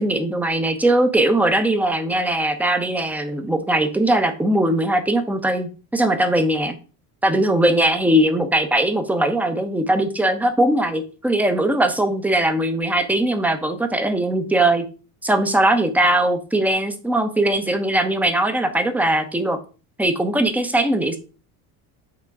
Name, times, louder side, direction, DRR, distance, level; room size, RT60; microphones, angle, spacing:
voice 1, 0.0-6.8 7.2-14.8 15.2-19.6 20.0-21.2, right 1 dB, 5° right, 7 dB, 0.9 m, -20 dB
6.1 x 3.7 x 4.9 m, 0.35 s
supercardioid pair, 100°, 40 cm